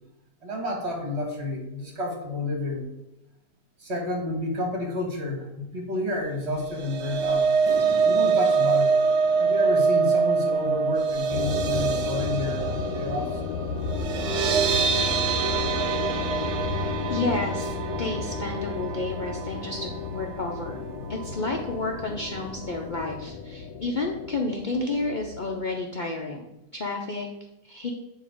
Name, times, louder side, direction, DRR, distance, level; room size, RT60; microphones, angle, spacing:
voice 1, 0.4-2.9 3.8-7.5 8.0-8.9 9.4-13.4, left 1 dB, 45° right, 1 dB, 1.4 m, -30 dB
sound 1, 6.6-20.8 21.2-21.4 21.7-21.8, right 5 dB, 60° right, 0.7 m, -25 dB
sound 2, 7.7-10.3 11.8-13.9, left 1 dB, 35° left, 1.6 m, -45 dB
sound 3, 11.3-25.6, left 5 dB, 75° left, 1.0 m, -33 dB
voice 2, 17.1-20.8 21.1-27.3 27.6-27.9, left 3 dB, 90° left, 0 dB, 0.4 m, -31 dB
8.4 x 2.8 x 5.0 m, 0.94 s
omnidirectional pair, 1.7 m